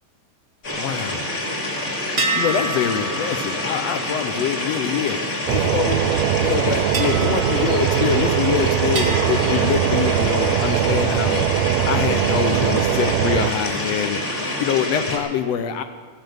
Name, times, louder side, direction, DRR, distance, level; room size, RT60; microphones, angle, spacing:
sound 1, 0.6-15.2, left 1 dB, 30° left, 2.3 m, -27 dB
voice 1, 0.7-1.2 2.3-6.0 6.4-11.5 11.9-14.2 14.6-15.8, left 8 dB, 75° left, 8 dB, 1.7 m, -25 dB
sound 2, 2.2-5.8 6.9-8.5 8.9-10.6, right 2 dB, 50° right, 0.7 m, -31 dB
sound 3, 5.5-13.5, right 11 dB, 80° right, 1.8 m, -21 dB
15.0 x 10.5 x 7.9 m, 1.5 s
omnidirectional pair, 3.4 m